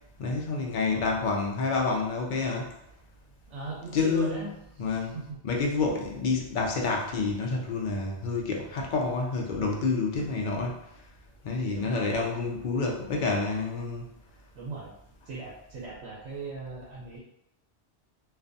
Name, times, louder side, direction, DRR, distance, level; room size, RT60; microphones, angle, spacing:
voice 1, 0.2-2.8 3.9-4.5 4.8-5.1 5.4-10.8 11.4-14.0, left 4 dB, 60° left, 0 dB, 0.5 m, -28 dB
voice 2, 0.9-1.2 3.5-4.5 5.0-5.4 11.7-12.2 14.5-14.9 15.2-17.2, right 3 dB, 80° right, -4 dB, 0.9 m, -39 dB
2.4 x 2.2 x 2.6 m, 0.81 s
omnidirectional pair, 1.2 m